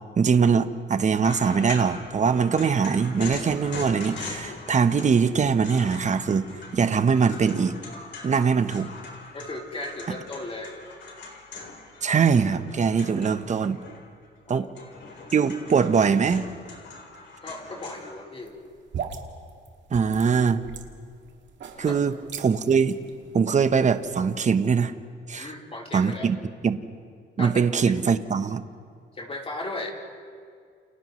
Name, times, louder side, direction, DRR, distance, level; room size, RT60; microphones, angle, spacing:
voice 1, 0.2-6.4 6.7-7.8 8.2-8.9 12.0-13.8 14.5-14.7 15.3-16.5 19.9-20.6 21.8-23.0 23.3-24.9 25.3-25.5 25.9-26.3 26.6-26.8 27.4-28.6, right 6 dB, 35° right, 10 dB, 1.0 m, -22 dB
sound 1, 1.2-14.3 14.6-18.1, left 4 dB, 65° left, 4.0 m, -41 dB
voice 2, 9.3-10.8 14.5-14.7 15.2-15.5 17.4-18.5 21.7-22.0 25.3-26.3 27.4-27.9 29.1-29.9, left 2 dB, 30° left, -2 dB, 4.0 m, -36 dB
sound 2, 18.4-24.5, right 7 dB, 65° right, 1.8 m, -40 dB
29.5 x 29.0 x 3.2 m, 2.1 s
cardioid pair, 90°, 20 cm